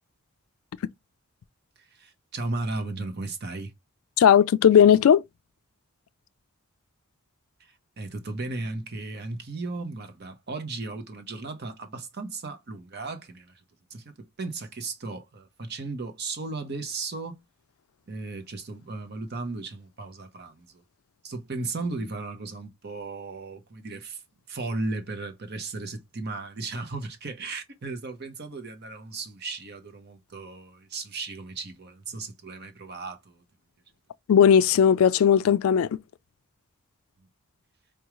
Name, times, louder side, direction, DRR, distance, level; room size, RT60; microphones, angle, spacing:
voice 1, 1.8-3.7 7.6-13.5 13.9-17.4 18.1-20.8 21.2-24.2 24.5-33.4, right 3 dB, 50° right, 0.8 m, -35 dB
voice 2, 4.2-5.2 34.3-36.0, left 8 dB, 70° left, 0.3 m, -17 dB
4.8 x 2.3 x 3.0 m
head